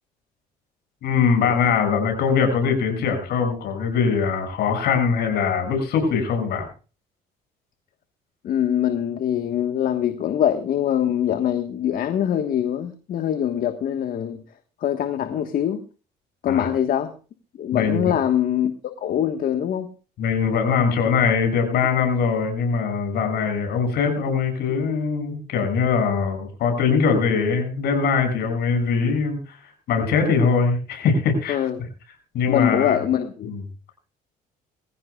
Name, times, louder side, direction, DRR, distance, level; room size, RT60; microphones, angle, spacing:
voice 1, 1.0-6.6 16.5-16.7 17.7-18.2 20.2-29.6 29.9-31.6 32.3-33.0 33.4-33.6, left 5 dB, 75° left, 4 dB, 6.7 m, -22 dB
voice 2, 8.4-14.4 14.8-15.8 16.4-17.1 17.6-18.7 19.0-19.9 31.5-31.8 32.5-33.5, left 10 dB, 60° left, 7 dB, 1.4 m, -23 dB
22.0 x 15.5 x 2.4 m, 0.35 s
cardioid pair, 110°, 17 cm